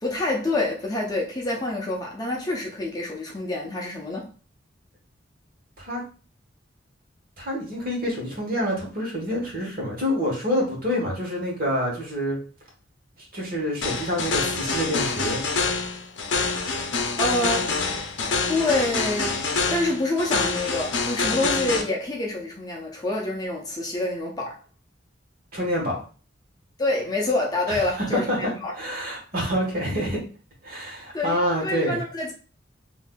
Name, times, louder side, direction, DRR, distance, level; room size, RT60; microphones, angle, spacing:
voice 1, 0.0-4.3 17.2-17.8 18.5-24.6 26.8-28.7 31.1-32.3, left 2 dB, 20° left, 0.5 m, -27 dB
voice 2, 7.4-12.4 13.3-15.4 25.5-26.0 27.7-30.2 30.6-32.0, equal, 50° right, 1.2 m, -27 dB
sound 1, 13.8-21.8, left 4 dB, 70° left, 0.6 m, -26 dB
3.7 x 2.6 x 2.2 m
head